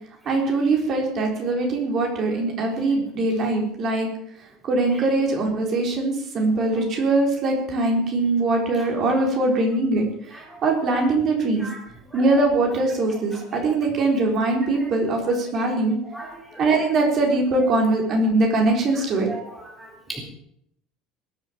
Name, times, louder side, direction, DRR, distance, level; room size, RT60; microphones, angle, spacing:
voice 1, 0.3-4.1 4.6-11.7 12.1-16.0 16.6-19.3, right 2 dB, 30° right, 1 dB, 3.9 m, -22 dB
voice 2, 16.1-16.6 19.3-19.4 19.8-20.2, right 2 dB, ahead, -3 dB, 3.8 m, -37 dB
21.0 x 7.6 x 7.6 m, 0.71 s
cardioid pair, 170°, 0 cm